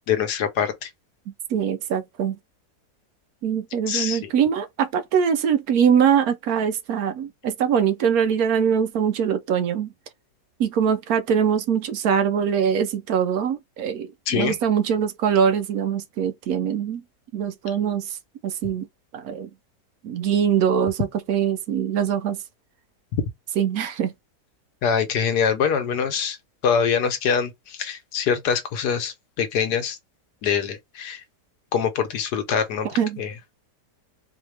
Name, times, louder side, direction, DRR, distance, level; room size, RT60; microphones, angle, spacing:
voice 1, 0.1-0.9 3.9-4.3 14.3-14.6 23.1-23.2 24.8-26.4 26.6-30.0 30.4-31.2 31.7-32.9 33.2-33.3, left 7 dB, 75° left, 1.4 m, -24 dB
voice 2, 1.5-2.4 3.4-9.9 10.6-17.0 17.3-18.2 18.4-18.9 19.1-19.5 20.0-22.4 23.6-24.1 32.8-33.2, right 8 dB, 70° right, 1.0 m, -23 dB
4.1 x 2.8 x 3.2 m
omnidirectional pair, 1.8 m